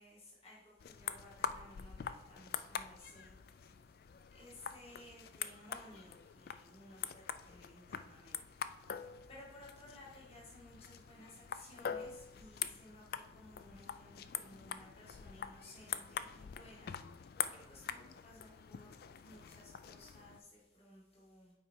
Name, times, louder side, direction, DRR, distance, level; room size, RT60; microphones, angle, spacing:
voice 1, 0.0-3.8 4.3-8.4 8.7-21.5, left 1 dB, 30° left, -5 dB, 2.0 m, -58 dB
sound 1, 0.8-20.4, left 8 dB, 50° left, 0.3 m, -45 dB
8.4 x 4.6 x 4.5 m, 0.98 s
head